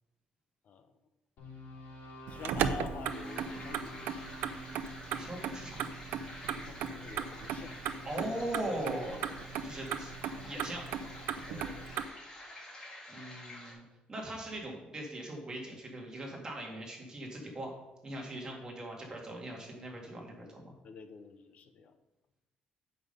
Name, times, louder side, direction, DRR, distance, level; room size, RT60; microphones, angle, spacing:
sound 1, 1.4-7.6, right 1 dB, 75° left, 3.2 m, -49 dB
voice 1, 2.3-4.1 6.5-7.8 10.4-10.7 11.5-12.1 20.8-21.9, left 5 dB, 50° left, 9 dB, 0.7 m, -48 dB
Motor vehicle (road), 2.3-12.1, right 8 dB, 85° right, 0.5 m, -37 dB
sound 2, 3.1-13.7, left 1 dB, 25° left, 2.6 m, -49 dB
voice 2, 5.1-5.9 8.0-9.2 9.6-10.1 10.4-10.8 13.1-13.8 14.1-17.7 18.0-20.7, right 1 dB, 25° right, -1 dB, 2.0 m, -40 dB
7.9 x 5.4 x 5.4 m, 1.0 s
cardioid pair, 135°, 3 cm